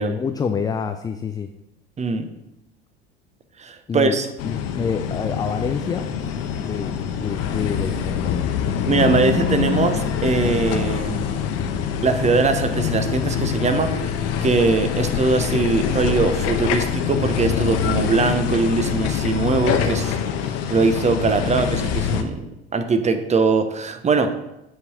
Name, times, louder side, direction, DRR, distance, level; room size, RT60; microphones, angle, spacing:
voice 1, 0.0-1.5 3.9-4.2 4.4-6.1 6.6-8.5, left 6 dB, 15° left, 8 dB, 0.3 m, -27 dB
voice 2, 2.0-2.3 3.6-4.3 8.9-11.4 12.0-20.2 20.4-24.3, right 4 dB, 20° right, 9 dB, 0.8 m, -21 dB
sound 1, 4.4-22.2, left 7 dB, 50° left, 0.9 m, -24 dB
8.3 x 4.7 x 4.3 m, 0.90 s
hypercardioid pair, 75°, 32 cm